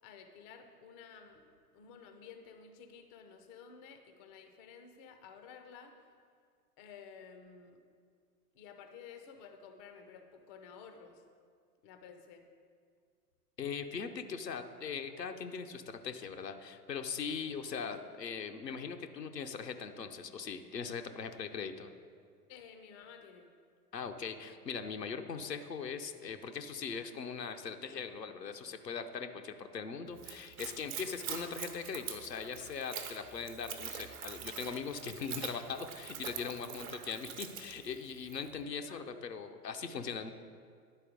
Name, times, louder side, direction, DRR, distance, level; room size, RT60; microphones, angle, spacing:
voice 1, 0.0-6.1 6.8-7.8 8.5-11.2 11.8-12.5 22.5-23.5 38.9-39.1, left 6 dB, 20° left, 6 dB, 0.4 m, -53 dB
voice 2, 13.6-21.9 23.9-40.3, left 6 dB, 85° left, 6 dB, 0.7 m, -40 dB
Splash splatter / Trickle dribble, 30.1-38.5, right 8 dB, 60° right, 1.0 m, -45 dB
10.5 x 4.3 x 5.0 m, 2.1 s
figure-of-eight pair, 95°, 48 cm